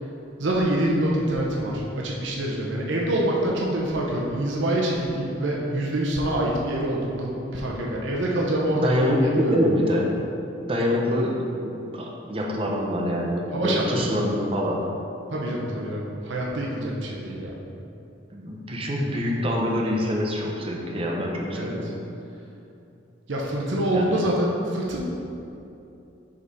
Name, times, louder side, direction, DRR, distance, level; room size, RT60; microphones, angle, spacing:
voice 1, 0.4-9.6 13.5-14.3 15.3-17.6 21.5-21.9 23.3-25.0, right 1 dB, 85° right, -3 dB, 0.8 m, -26 dB
voice 2, 8.8-10.1 10.6-14.9 18.3-22.0 23.9-24.2, equal, 30° right, -1 dB, 0.7 m, -25 dB
5.8 x 5.3 x 4.1 m, 2.8 s
head